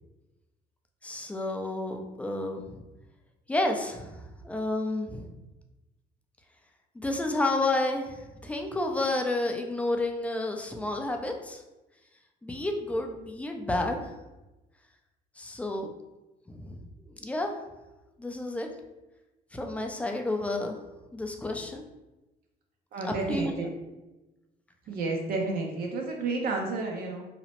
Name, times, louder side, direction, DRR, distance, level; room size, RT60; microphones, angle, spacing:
voice 1, 1.0-2.8 3.5-5.3 6.9-11.6 12.4-14.2 15.4-15.9 16.5-17.6 18.2-18.7 19.5-20.8 21.1-21.8 23.0-23.7, left 2 dB, 10° left, 3 dB, 0.3 m, -31 dB
voice 2, 22.9-23.7 24.9-27.2, right 3 dB, 65° right, 0 dB, 0.5 m, -31 dB
2.8 x 2.0 x 2.9 m, 1.0 s
cardioid pair, 110°, 17 cm